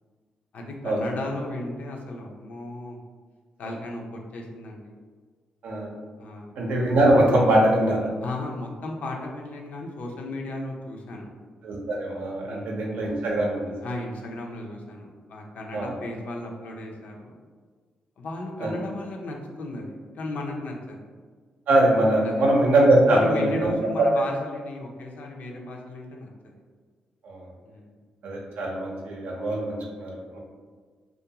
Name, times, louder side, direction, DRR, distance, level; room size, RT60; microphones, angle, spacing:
voice 1, 0.5-3.0 3.6-4.9 6.2-6.5 8.2-11.3 12.4-12.8 13.8-17.4 18.2-21.0 22.2-22.5 23.1-26.5 27.6-27.9, left 2 dB, 65° left, 1 dB, 0.5 m, -35 dB
voice 2, 6.6-8.1 11.6-13.7 15.7-15.9 18.6-18.7 21.7-23.7 24.0-24.1 27.2-27.5 28.2-30.4, right 1 dB, 80° right, -2 dB, 0.6 m, -22 dB
2.4 x 2.2 x 2.8 m, 1.5 s
cardioid pair, 75°, 3 cm